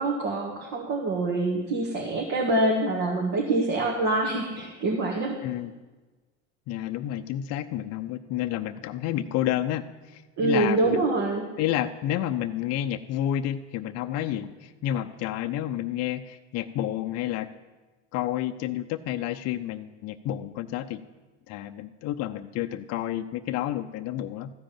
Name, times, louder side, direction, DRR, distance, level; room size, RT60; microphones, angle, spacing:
voice 1, 0.0-5.4 10.4-11.5, right 2 dB, 50° right, 0 dB, 1.9 m, -25 dB
voice 2, 6.7-11.0 11.6-17.5 18.1-21.0 21.5-24.5, left 12 dB, 45° left, 7 dB, 0.6 m, -30 dB
14.0 x 5.1 x 9.0 m, 1.2 s
hypercardioid pair, 95°, 35 cm